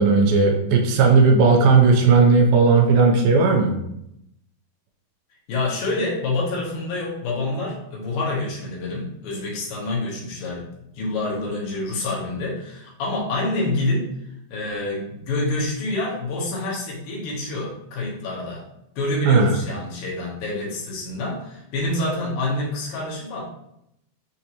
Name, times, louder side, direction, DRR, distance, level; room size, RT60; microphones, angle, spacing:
voice 1, 0.0-3.8 19.3-19.6, right 4 dB, 85° right, 1 dB, 2.4 m, -16 dB
voice 2, 5.5-10.6 10.9-14.2 14.5-18.6 19.0-23.4, left 2 dB, 75° left, -3 dB, 2.8 m, -27 dB
6.9 x 2.6 x 2.9 m, 0.79 s
omnidirectional pair, 4.3 m